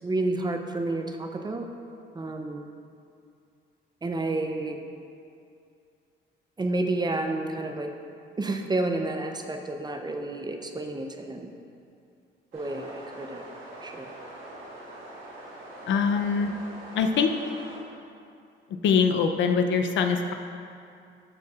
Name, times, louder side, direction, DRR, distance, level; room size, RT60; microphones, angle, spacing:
voice 1, 0.0-1.7 2.1-2.6 4.0-4.8 6.6-7.9 8.4-11.5 12.5-13.5 13.8-14.1, right 2 dB, 20° right, 5 dB, 0.5 m, -30 dB
sound 1, 12.5-17.8, right 1 dB, 85° right, 1.4 m, -43 dB
voice 2, 15.9-16.5 16.9-17.3 18.8-20.3, left 6 dB, 70° left, 6 dB, 0.5 m, -23 dB
11.5 x 4.5 x 2.4 m, 2.5 s
cardioid pair, 90°, 20 cm